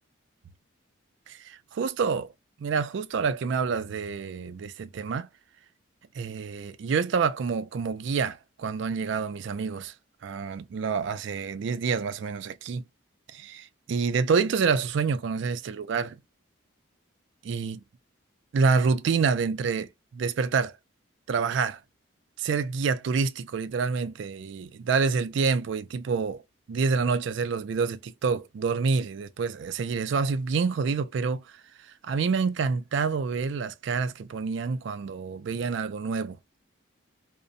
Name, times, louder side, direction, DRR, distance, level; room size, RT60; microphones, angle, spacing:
voice 1, 1.3-2.3 2.6-5.3 6.2-9.9 10.2-12.8 13.3-16.2 17.4-17.8 18.5-20.7 21.3-21.8 22.4-26.4 26.7-31.4 32.0-36.4, right 5 dB, 60° right, 0.3 m, -27 dB
2.5 x 2.0 x 2.5 m
head